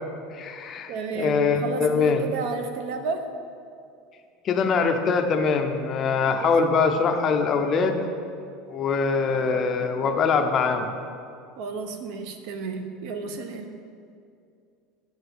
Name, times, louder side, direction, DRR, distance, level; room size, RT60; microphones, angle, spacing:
voice 1, 0.3-2.3 4.4-8.0 8.7-10.9, left 5 dB, 25° left, 5 dB, 0.6 m, -23 dB
voice 2, 0.9-3.3 6.4-6.6 11.6-13.8, right 5 dB, 55° right, 7 dB, 0.7 m, -32 dB
8.3 x 4.9 x 6.8 m, 2.4 s
cardioid pair, 175°, 0 cm